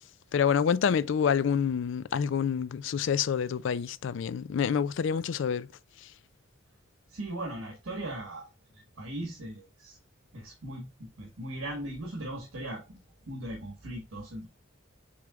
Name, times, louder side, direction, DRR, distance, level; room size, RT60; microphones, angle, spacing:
voice 1, 0.3-5.7, left 7 dB, 60° left, 0.3 m, -27 dB
voice 2, 7.1-8.5 8.7-10.0 10.3-13.0 13.2-14.5, right 1 dB, 75° right, 1.4 m, -38 dB
6.8 x 3.2 x 2.4 m
head